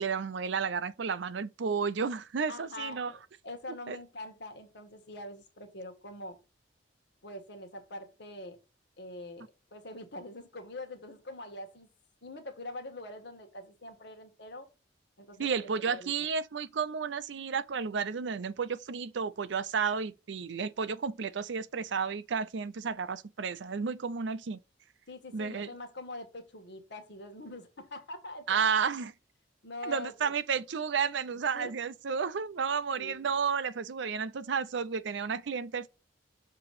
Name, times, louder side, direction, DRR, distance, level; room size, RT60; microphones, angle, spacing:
voice 1, 0.0-3.1 3.9-4.0 15.4-24.6 25.3-25.7 28.5-29.1 29.8-35.9, right 6 dB, 70° right, 0.5 m, -32 dB
voice 2, 2.5-6.3 7.2-8.6 9.0-9.5 9.7-11.9 12.2-14.7 15.2-16.1 25.1-28.6 29.6-30.3 31.5-31.7 33.0-33.4, left 1 dB, 65° left, 1.6 m, -44 dB
6.8 x 3.0 x 5.0 m
head